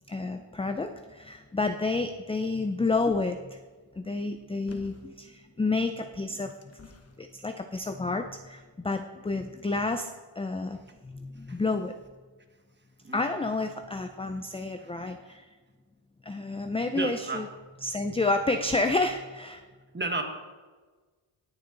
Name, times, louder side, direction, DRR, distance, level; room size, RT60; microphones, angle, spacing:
voice 1, 0.1-3.6 4.0-6.5 7.2-10.1 10.4-10.8 11.0-11.9 13.1-15.4 16.2-17.5 17.8-19.6, left 3 dB, 15° left, 7 dB, 0.4 m, -30 dB
sound 1, 4.7-5.2 6.0-7.3 8.1-8.2, left 4 dB, 30° left, 1.1 m, -49 dB
voice 2, 16.9-17.4 19.9-20.2, right 3 dB, 20° right, 4 dB, 1.3 m, -33 dB
18.0 x 6.9 x 3.8 m, 1.4 s
wide cardioid pair, 140°, 50 cm